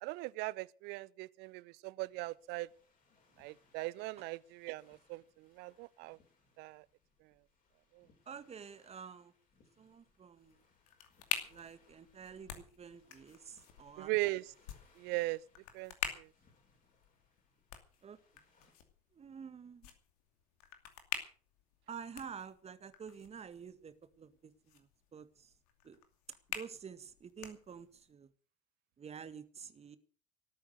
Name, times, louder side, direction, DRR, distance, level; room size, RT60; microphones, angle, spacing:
voice 1, 0.0-2.7 3.4-6.2 6.6-6.8 7.9-8.1 14.0-14.5 15.0-15.4 15.7-16.3, right 21 dB, 55° right, 0.7 m, -39 dB
sound 1, 2.0-18.7, left 4 dB, 40° left, 7.9 m, -72 dB
voice 2, 8.3-9.3 9.8-10.6 11.5-14.1 18.0-18.2 19.1-19.9 21.9-25.5 25.8-26.0 26.5-28.3 29.0-30.0, right 7 dB, 30° right, 1.7 m, -49 dB
sound 2, 10.4-28.1, left 9 dB, 65° left, 2.6 m, -47 dB
18.5 x 9.2 x 6.7 m
figure-of-eight pair, 60°, 21 cm